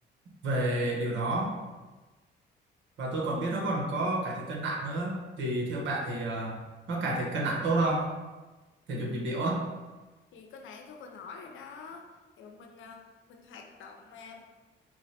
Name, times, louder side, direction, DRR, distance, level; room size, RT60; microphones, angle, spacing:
voice 1, 0.4-1.6 3.0-6.6 6.9-8.1 8.9-9.6, right 2 dB, 70° right, -1 dB, 1.0 m, -30 dB
voice 2, 10.3-12.1 12.4-14.4, left 5 dB, 80° left, 3 dB, 0.6 m, -47 dB
4.5 x 2.0 x 4.2 m, 1.2 s
cardioid pair, 90°, 20 cm